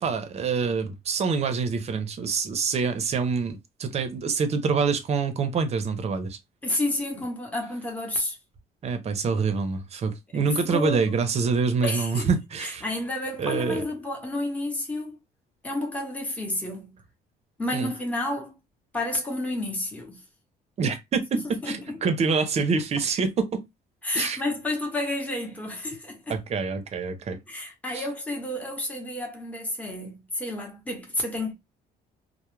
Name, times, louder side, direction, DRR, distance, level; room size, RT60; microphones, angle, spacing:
voice 1, 0.0-6.4 8.8-12.9 13.4-13.8 17.7-17.9 20.8-23.6 24.1-24.4 26.3-27.4 27.9-28.1, right 5 dB, 40° right, 0.6 m, -26 dB
voice 2, 6.6-8.4 10.3-11.1 11.8-12.3 12.6-15.2 15.6-17.0 17.6-18.5 18.9-20.2 21.6-22.0 24.0-26.4 27.5-31.5, left 2 dB, 10° left, 0.8 m, -30 dB
2.2 x 2.1 x 3.0 m
cardioid pair, 110°, 17 cm